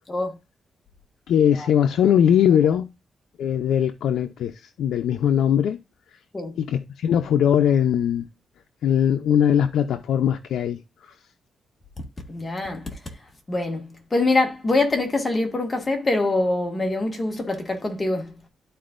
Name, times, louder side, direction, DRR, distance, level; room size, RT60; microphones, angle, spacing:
voice 1, 0.1-0.4 1.5-1.7 6.3-6.6 12.3-13.0 13.5-18.4, left 2 dB, 20° left, 1.8 m, -24 dB
voice 2, 1.3-2.9 3.4-4.5 4.8-5.8 6.6-8.2 8.8-10.8, left 9 dB, 90° left, 0.5 m, -20 dB
12.5 x 4.3 x 2.5 m
cardioid pair, 130°, 0 cm